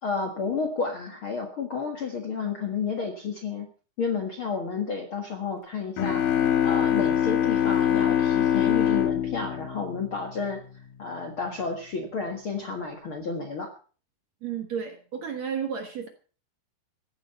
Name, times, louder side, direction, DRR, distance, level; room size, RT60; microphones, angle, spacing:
voice 1, 0.0-3.7 4.0-6.2 6.6-10.6 11.0-13.7, left 5 dB, 50° left, 3 dB, 1.7 m, -31 dB
sound 1, 6.0-10.6, left 10 dB, 65° left, 2.8 m, -24 dB
voice 2, 14.4-16.1, right 7 dB, 60° right, 6 dB, 2.0 m, -32 dB
15.5 x 10.5 x 5.7 m, 0.40 s
omnidirectional pair, 4.6 m